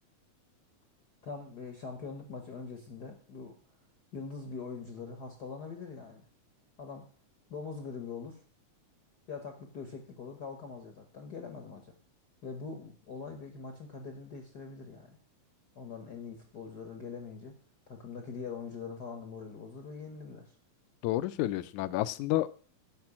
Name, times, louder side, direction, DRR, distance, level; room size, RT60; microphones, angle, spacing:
voice 1, 1.2-3.5 4.1-6.2 6.8-7.1 7.5-8.4 9.3-11.9 12.4-15.2 15.7-17.5 17.9-20.5, left 5 dB, 55° left, 5 dB, 1.1 m, -43 dB
voice 2, 21.0-22.5, left 15 dB, 80° left, 16 dB, 2.0 m, -30 dB
10.5 x 5.9 x 7.2 m, 0.42 s
omnidirectional pair, 3.5 m